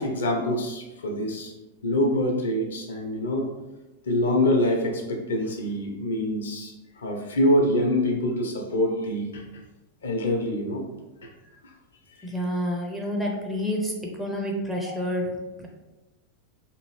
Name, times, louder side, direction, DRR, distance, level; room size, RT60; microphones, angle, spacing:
voice 1, 0.0-1.5 1.8-3.5 4.1-9.4 10.0-10.8 13.1-13.3, left 1 dB, 65° left, 1 dB, 0.6 m, -25 dB
voice 2, 12.2-15.7, equal, 5° right, -1 dB, 0.6 m, -29 dB
2.7 x 2.5 x 3.1 m, 1.1 s
figure-of-eight pair, 90°, 0 cm